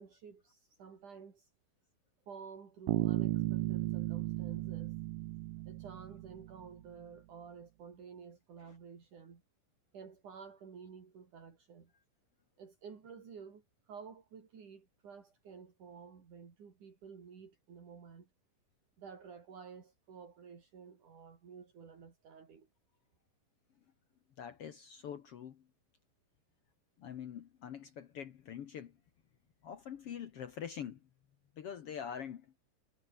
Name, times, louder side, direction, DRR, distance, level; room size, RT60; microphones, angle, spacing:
voice 1, 0.0-1.5 2.3-5.0 5.7-9.4 9.9-11.9 12.6-18.3 19.0-22.7, right 6 dB, 65° right, 5.2 m, -52 dB
Bass guitar, 2.9-6.7, right 18 dB, 90° right, 2.4 m, -35 dB
voice 2, 24.4-25.6 27.0-28.9 29.6-31.0 31.6-32.5, left 8 dB, 60° left, 1.8 m, -44 dB
omnidirectional pair, 3.8 m